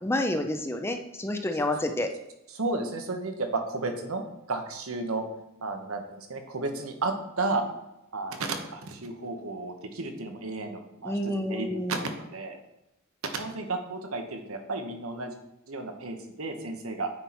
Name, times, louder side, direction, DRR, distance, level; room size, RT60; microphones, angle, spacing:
voice 1, 0.0-2.1 11.0-12.0, left 1 dB, 10° left, 5 dB, 0.5 m, -29 dB
voice 2, 2.5-5.3 5.6-7.6 8.1-12.6 13.3-15.3 15.7-17.1, right 3 dB, 75° right, 5 dB, 1.1 m, -33 dB
9.0 x 4.5 x 4.2 m, 0.89 s
head